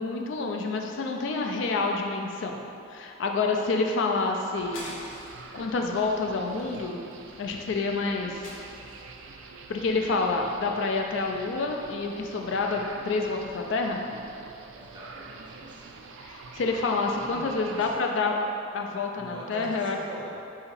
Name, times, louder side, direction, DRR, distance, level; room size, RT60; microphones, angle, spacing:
voice 1, 0.0-2.6 2.9-4.9 5.5-7.0 7.4-8.4 9.7-14.0 16.2-18.4 18.7-20.0, left 3 dB, 65° left, 2 dB, 0.4 m, -28 dB
sound 1, 4.6-18.0, right 4 dB, 65° right, 0.3 m, -46 dB
sound 2, 4.7-5.5 5.9-6.1 6.5-7.4 8.4-9.2, left 1 dB, 80° left, 0.8 m, -44 dB
voice 2, 14.7-15.9 17.2-17.9 19.2-20.3, equal, 25° right, -4 dB, 0.5 m, -43 dB
3.8 x 2.8 x 4.3 m, 2.7 s
head